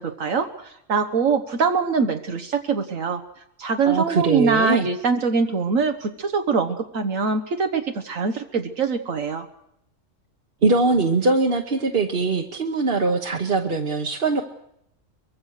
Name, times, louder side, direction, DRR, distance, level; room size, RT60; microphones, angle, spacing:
voice 1, 0.0-3.2 3.6-9.5, right 5 dB, 75° right, 5 dB, 1.6 m, -23 dB
voice 2, 3.8-4.9 10.6-14.4, right 3 dB, 45° right, 2 dB, 1.4 m, -21 dB
24.0 x 22.0 x 6.5 m, 0.78 s
omnidirectional pair, 1.4 m